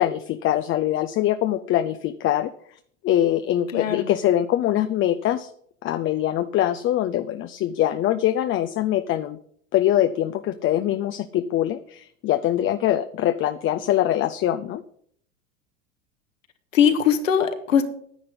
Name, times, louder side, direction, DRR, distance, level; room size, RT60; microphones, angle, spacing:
voice 1, 0.0-2.5 3.0-5.5 5.8-9.4 9.7-14.8, left 12 dB, 30° left, 11 dB, 0.6 m, -23 dB
voice 2, 3.7-4.1 16.7-17.8, left 8 dB, 75° left, 9 dB, 1.6 m, -20 dB
10.0 x 10.0 x 5.3 m, 0.63 s
hypercardioid pair, 85°, 39 cm